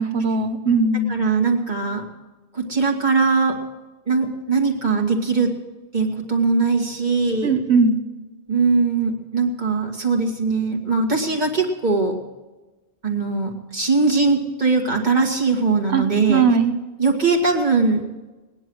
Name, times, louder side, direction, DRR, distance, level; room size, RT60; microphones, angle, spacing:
voice 1, 0.0-1.2 7.4-8.0 15.9-16.7, right 4 dB, 75° right, 6 dB, 1.6 m, -19 dB
voice 2, 1.1-2.1 2.5-3.6 4.1-5.5 5.9-7.5 8.5-12.2 13.0-16.5 17.0-18.0, right 4 dB, 45° right, 1 dB, 2.1 m, -20 dB
19.0 x 10.5 x 6.2 m, 1.2 s
omnidirectional pair, 1.1 m